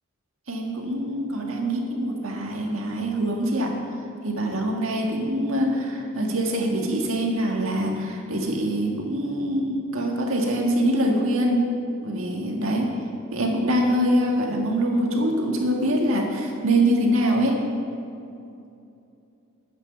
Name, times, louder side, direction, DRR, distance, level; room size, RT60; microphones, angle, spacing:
voice 1, 0.5-3.8 4.2-11.7 12.0-12.9 13.3-17.7, right 1 dB, 70° right, 0 dB, 1.8 m, -24 dB
9.7 x 8.1 x 6.9 m, 2.6 s
head